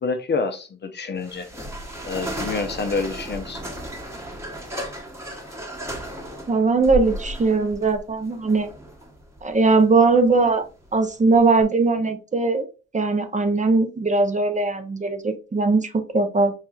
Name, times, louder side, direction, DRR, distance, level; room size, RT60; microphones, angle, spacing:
voice 1, 0.0-1.5 2.0-3.6, left 4 dB, 35° left, 0.6 m, -27 dB
sound 1, 1.2-11.6, equal, 10° right, 1.0 m, -35 dB
voice 2, 6.5-8.7 9.4-10.6 10.9-12.7 12.9-16.5, right 3 dB, 25° right, 0.6 m, -20 dB
4.8 x 2.9 x 2.3 m
cardioid pair, 90°, 30 cm